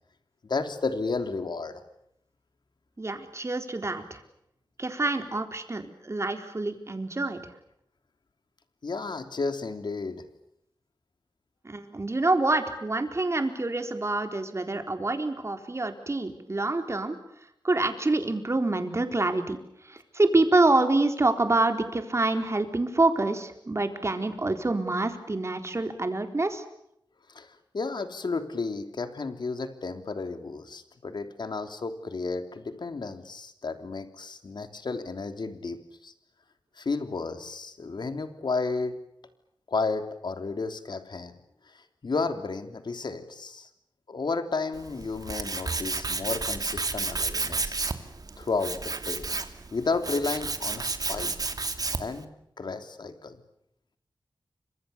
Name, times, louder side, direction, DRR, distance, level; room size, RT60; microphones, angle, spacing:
voice 1, 0.4-1.8 8.8-10.3 27.3-27.5 27.7-36.1 36.8-39.0 39.7-41.3 41.7-43.7 44.1-47.8 48.4-49.3 49.7-51.4 52.0-53.4, left 4 dB, 70° left, 8 dB, 3.3 m, -32 dB
voice 2, 3.0-4.2 4.8-7.4 11.6-17.2 17.6-26.6, right 2 dB, 35° right, 7 dB, 4.1 m, -26 dB
Tools, 44.7-52.2, right 3 dB, 50° right, 2.7 m, -31 dB
30.0 x 26.0 x 7.0 m, 0.77 s
wide cardioid pair, 90°, 8 cm